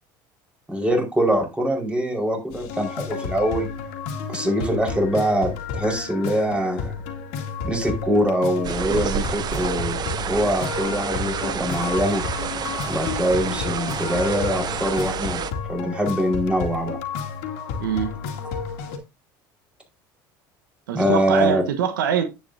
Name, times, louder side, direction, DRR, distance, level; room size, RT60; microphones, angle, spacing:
voice 1, 0.7-3.7 4.3-6.9 7.6-10.0 10.3-12.2 12.9-15.4 15.7-17.0 20.9-21.6, equal, 10° right, 4.7 m, -23 dB
sound 1, 2.5-19.0, left 5 dB, 75° left, 2.2 m, -31 dB
sound 2, 8.6-15.5, right 8 dB, 40° right, 0.9 m, -29 dB
voice 2, 17.8-18.1 20.9-22.2, right 8 dB, 90° right, 1.2 m, -23 dB
10.0 x 8.6 x 2.7 m
hypercardioid pair, 85°, 11 cm